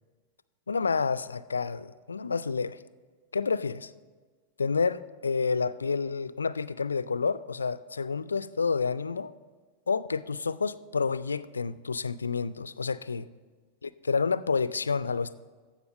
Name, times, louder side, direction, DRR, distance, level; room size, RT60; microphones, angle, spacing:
voice 1, 0.7-2.8 3.3-3.9 4.6-9.3 9.9-13.3 13.8-15.3, left 5 dB, 75° left, 17 dB, 0.3 m, -29 dB
14.5 x 5.2 x 6.2 m, 1.4 s
figure-of-eight pair, 90°, 0 cm